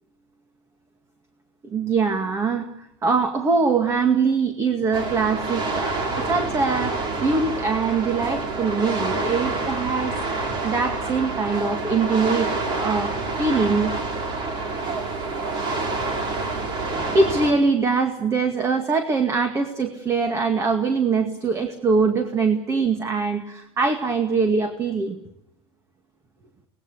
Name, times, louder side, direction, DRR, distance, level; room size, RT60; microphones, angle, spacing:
voice 1, 1.6-10.2 10.6-13.1 13.4-13.9 16.9-25.2, right 4 dB, 20° right, 7 dB, 2.1 m, -23 dB
sound 1, 4.9-17.5, right 3 dB, 35° right, 4.3 m, -27 dB
25.0 x 19.0 x 8.4 m, 0.82 s
supercardioid pair, 150°, 13 cm